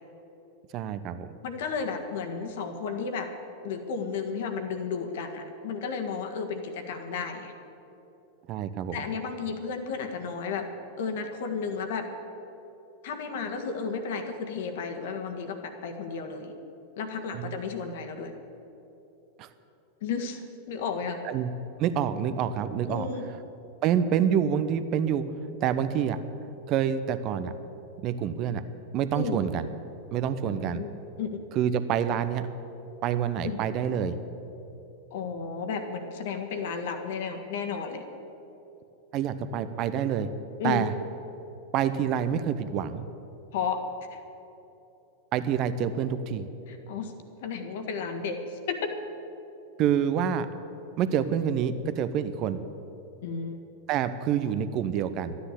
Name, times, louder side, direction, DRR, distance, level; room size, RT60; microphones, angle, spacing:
voice 1, 0.7-1.4 8.5-9.0 17.3-17.5 19.4-19.5 21.3-21.5 21.8-23.1 23.8-25.2 25.6-26.2 26.7-27.5 28.0-28.6 28.9-29.7 30.1-30.8 31.5-32.4 33.0-34.2 39.1-40.3 40.6-40.9 41.7-43.1 45.3-46.5 49.8-50.5 51.0-52.6 53.9-55.4, right 9 dB, 40° right, 12 dB, 0.9 m, -27 dB
voice 2, 1.4-3.3 3.6-7.5 8.9-10.7 11.0-12.1 13.0-16.5 17.0-18.3 20.0-20.4 20.7-21.2 22.9-23.3 29.1-29.4 30.5-31.4 33.4-33.6 35.1-38.0 40.6-40.9 43.5-43.8 44.1-44.2 46.7-47.2 47.4-48.9 53.2-53.6, left 5 dB, 55° left, 6 dB, 1.6 m, -33 dB
13.0 x 9.9 x 9.8 m, 3.0 s
figure-of-eight pair, 90°, 0 cm